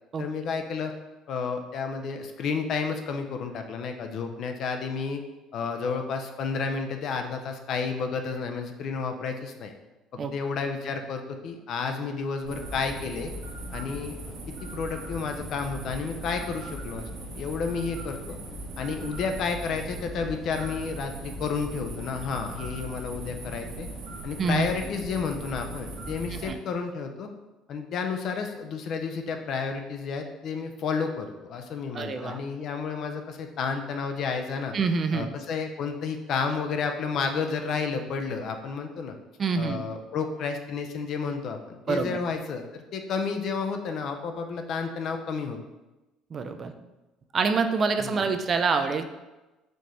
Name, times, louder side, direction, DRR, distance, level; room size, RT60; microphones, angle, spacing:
voice 1, 0.2-0.9 1.3-5.2 5.5-9.7 10.3-13.3 13.7-14.4 14.6-17.1 17.4-18.4 18.8-23.9 24.2-27.3 27.7-34.7 35.1-39.2 39.6-45.6 48.0-48.3, left 5 dB, 55° left, 5 dB, 0.5 m, -31 dB
sound 1, 12.4-26.5, right 1 dB, 65° right, 0.9 m, -39 dB
voice 2, 31.9-32.4 34.7-35.3 39.4-39.8 41.9-42.2 46.3-46.7 47.3-49.1, right 4 dB, 40° right, 8 dB, 0.3 m, -26 dB
4.2 x 3.0 x 3.2 m, 1.1 s
cardioid pair, 105°, 0 cm